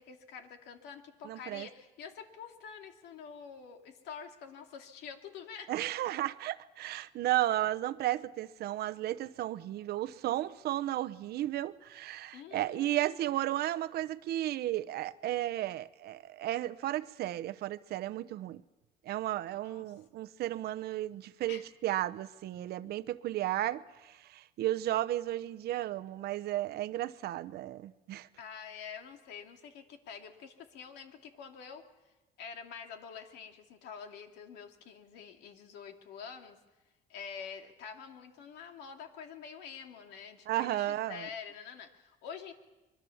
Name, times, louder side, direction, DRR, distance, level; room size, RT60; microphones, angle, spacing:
voice 1, 0.0-5.7 12.3-12.9 19.6-19.9 21.5-21.6 28.4-31.8 32.4-36.6 37.1-42.5, left 6 dB, 85° left, 2.7 m, -47 dB
voice 2, 1.2-1.7 5.7-18.6 19.1-28.3 40.5-41.3, right 14 dB, 70° right, 0.9 m, -34 dB
25.5 x 22.5 x 7.2 m
cardioid pair, 110°, 17 cm